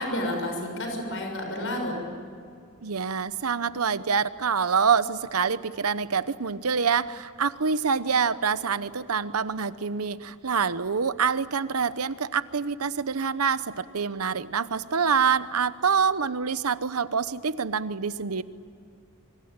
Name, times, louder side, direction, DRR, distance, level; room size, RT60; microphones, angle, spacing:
voice 1, 0.0-1.9, left 1 dB, 60° left, 3 dB, 6.5 m, -30 dB
voice 2, 2.8-18.4, right 6 dB, 80° right, 14 dB, 0.9 m, -26 dB
26.0 x 24.5 x 8.9 m, 2.3 s
head